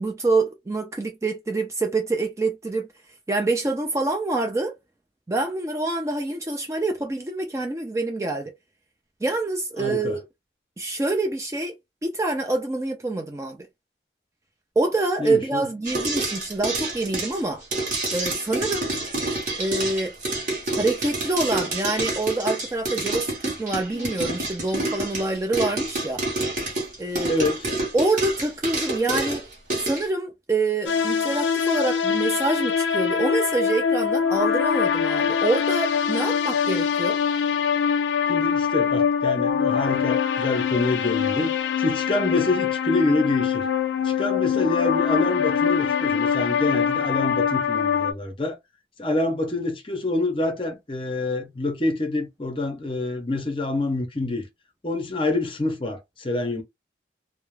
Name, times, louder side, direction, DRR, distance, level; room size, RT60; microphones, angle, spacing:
voice 1, 0.0-2.9 3.3-4.7 5.3-8.5 9.2-10.2 10.8-11.7 12.0-13.7 14.8-17.6 18.1-18.9 19.6-20.1 20.8-26.2 27.0-27.4 27.9-29.4 29.8-37.2, right 2 dB, 15° right, 0.3 m, -26 dB
voice 2, 9.8-10.2 15.2-15.6 27.3-27.7 38.3-41.5 41.8-43.7 44.0-48.6 49.0-54.5 54.8-56.6, left 2 dB, 30° left, 0.6 m, -26 dB
Pop Corn Popping, 15.8-30.0, right 2 dB, 45° right, 0.8 m, -28 dB
sound 1, 30.9-48.1, left 7 dB, 90° left, 0.4 m, -23 dB
2.3 x 2.0 x 3.1 m
head